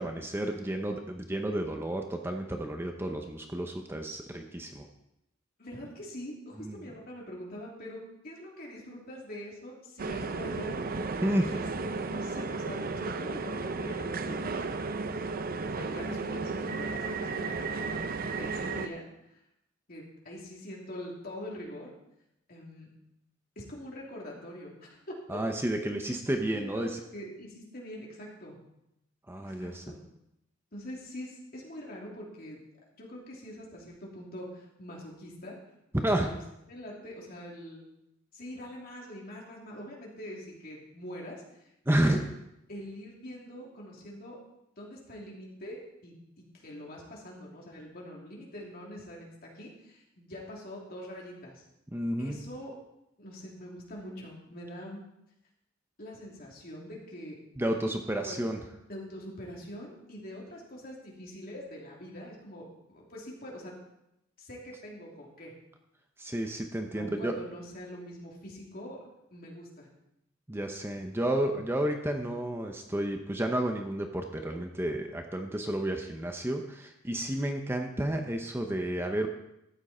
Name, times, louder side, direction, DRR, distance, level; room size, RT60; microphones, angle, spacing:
voice 1, 0.0-4.9 6.6-6.8 11.2-11.5 25.3-27.0 29.3-29.8 36.0-36.3 41.9-42.2 51.9-52.4 57.6-58.6 66.2-67.3 70.5-79.3, right 1 dB, 10° right, 4 dB, 0.8 m, -31 dB
voice 2, 5.6-10.8 11.5-11.6 12.0-15.0 15.6-17.9 18.4-19.0 19.3-19.4 19.9-21.9 22.5-22.9 23.6-25.4 26.5-28.6 29.4-30.0 30.7-32.6 33.0-35.5 36.2-36.4 36.7-37.8 38.3-41.4 42.0-42.3 42.7-44.4 44.8-51.6 52.2-52.7 53.2-55.0 56.0-57.4 58.2-58.4 58.9-63.7 64.4-65.5 66.9-69.9, equal, 50° left, -3 dB, 3.0 m, -44 dB
sound 1, 10.0-18.9, right 3 dB, 50° right, 0.6 m, -34 dB
13.5 x 9.0 x 4.3 m, 0.83 s
head